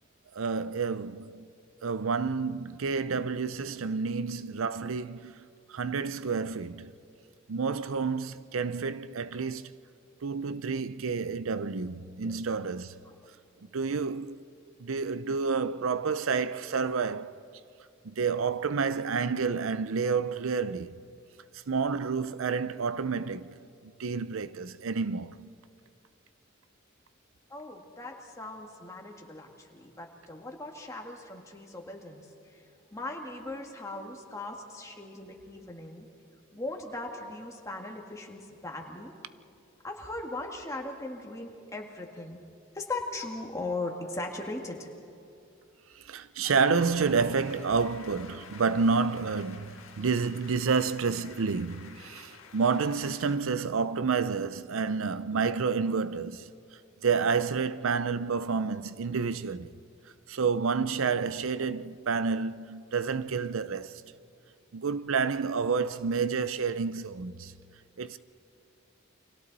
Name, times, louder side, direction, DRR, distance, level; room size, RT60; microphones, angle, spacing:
voice 1, 0.3-1.5 1.8-6.9 7.5-9.7 10.2-13.0 13.7-14.4 14.8-17.4 18.0-21.0 21.5-25.5 34.0-34.1 45.9-56.5 57.0-59.8 60.3-64.0 64.7-67.5 68.0-68.2, right 5 dB, 80° right, 0.6 m, -29 dB
voice 2, 27.5-32.3 32.9-36.1 36.5-39.1 39.8-42.4 42.7-44.9, left 2 dB, 15° left, 1.9 m, -39 dB
sound 1, 46.4-53.4, left 5 dB, 80° left, 1.7 m, -50 dB
29.5 x 24.0 x 4.1 m
head